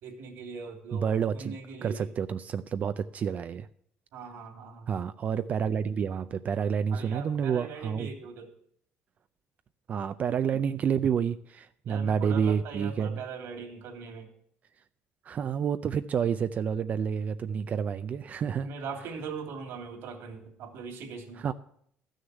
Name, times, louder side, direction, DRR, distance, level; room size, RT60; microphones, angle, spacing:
voice 1, 0.0-2.1 4.1-4.9 6.9-8.5 11.8-14.3 18.6-21.4, right 5 dB, 75° right, 4 dB, 2.9 m, -40 dB
voice 2, 0.9-3.7 4.9-8.1 9.9-13.2 15.3-18.7 21.4-21.5, right 7 dB, 40° right, 11 dB, 0.5 m, -29 dB
13.0 x 6.4 x 8.1 m, 0.65 s
cardioid pair, 145°, 4 cm